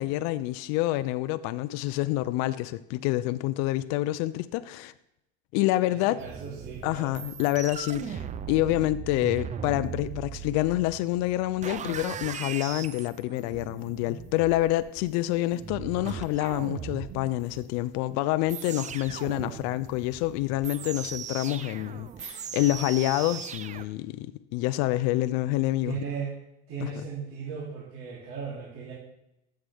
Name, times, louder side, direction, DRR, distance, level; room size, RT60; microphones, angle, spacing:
voice 1, 0.0-4.9 5.5-6.2 6.8-26.0 26.8-26.9, left 16 dB, 60° left, 0.6 m, -27 dB
voice 2, 5.8-7.5 25.8-26.3 26.7-28.9, right 6 dB, 45° right, 3.2 m, -37 dB
dist crack squeeelch, 6.2-23.8, right 8 dB, 25° right, 0.5 m, -39 dB
14.0 x 7.8 x 3.5 m
supercardioid pair, 125°, 30 cm